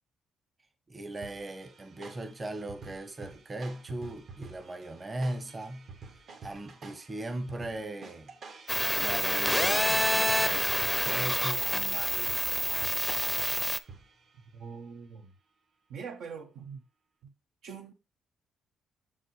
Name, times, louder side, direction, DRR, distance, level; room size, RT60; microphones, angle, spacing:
voice 1, 0.9-5.9 6.4-8.3 8.9-10.7 11.0-12.5, right 1 dB, 30° right, 1.1 m, -38 dB
sound 1, 1.2-14.4, right 4 dB, 60° right, 1.4 m, -50 dB
sound 2, 8.7-13.8, left 1 dB, 10° left, 0.6 m, -27 dB
voice 2, 14.5-15.3 15.9-16.8 17.2-17.3 17.6-17.9, right 6 dB, 80° right, 1.1 m, -43 dB
6.5 x 5.4 x 3.2 m
cardioid pair, 90°, 0 cm